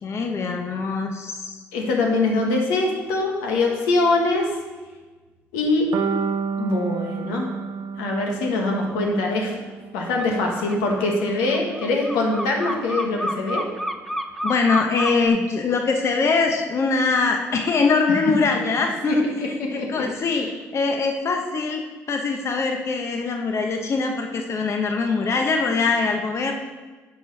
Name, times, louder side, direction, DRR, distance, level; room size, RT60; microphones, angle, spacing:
voice 1, 0.0-1.6 14.4-20.5 20.7-21.8 22.1-26.5, left 4 dB, 50° left, 3 dB, 0.9 m, -23 dB
voice 2, 1.7-4.5 5.5-5.9 6.6-7.5 8.0-9.6 9.9-13.6 19.0-19.2 19.6-20.0 20.3-20.5, left 2 dB, 85° left, 0 dB, 1.3 m, -23 dB
sound 1, 5.9-10.0, right 6 dB, 55° right, 0.6 m, -30 dB
sound 2, 10.2-10.3 10.6-15.3, equal, 5° left, 0.7 m, -29 dB
9.7 x 4.8 x 4.1 m, 1.3 s
supercardioid pair, 60°, 6 cm